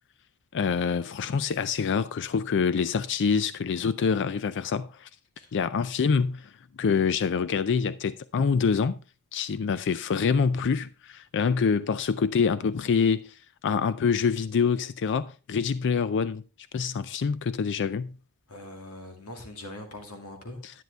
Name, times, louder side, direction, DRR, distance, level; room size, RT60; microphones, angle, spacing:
voice 1, 0.5-5.1 5.5-6.5 6.8-9.0 9.3-13.3 13.6-16.4 16.7-18.2 20.6-20.7, left 6 dB, 55° left, 0.4 m, -26 dB
voice 2, 18.5-20.6, left 1 dB, 90° left, 2.2 m, -42 dB
10.5 x 9.3 x 3.3 m
head